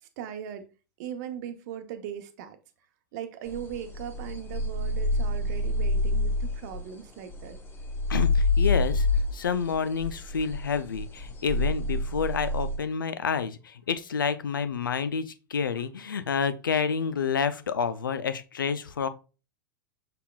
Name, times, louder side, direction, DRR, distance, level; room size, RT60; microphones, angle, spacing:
voice 1, 0.2-0.7 1.0-2.6 3.1-7.6, right 9 dB, 60° right, 0.7 m, -39 dB
sound 1, 3.5-6.9 7.3-12.8, left 2 dB, 20° left, 1.1 m, -27 dB
voice 2, 8.1-9.1 9.3-19.1, left 6 dB, 85° left, 0.4 m, -29 dB
5.6 x 3.6 x 2.3 m
hypercardioid pair, 100°, 11 cm